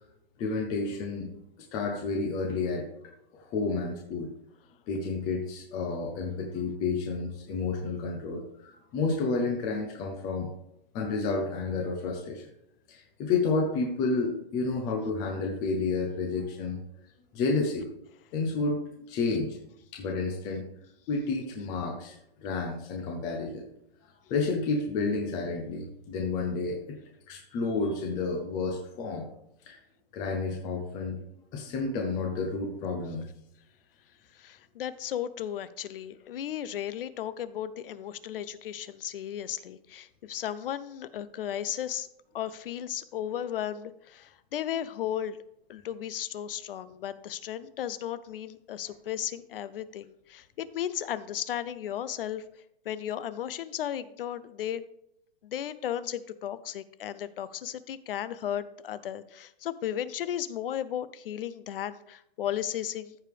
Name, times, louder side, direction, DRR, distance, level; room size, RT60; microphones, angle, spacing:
voice 1, 0.4-1.3 1.7-2.9 3.3-4.3 4.9-10.5 10.9-12.5 12.9-16.8 17.3-17.9 18.3-18.8 19.1-19.6 19.9-20.6 21.1-23.7 24.3-27.0 27.3-29.3 29.7-29.8 30.1-31.2 31.5-33.3, left 3 dB, 15° left, 1 dB, 0.5 m, -30 dB
voice 2, 34.4-42.1 42.3-45.4 45.7-52.4 52.9-54.8 55.4-63.2, left 10 dB, 65° left, 16 dB, 0.7 m, -35 dB
14.0 x 4.9 x 3.4 m, 0.80 s
hypercardioid pair, 165°, 30 cm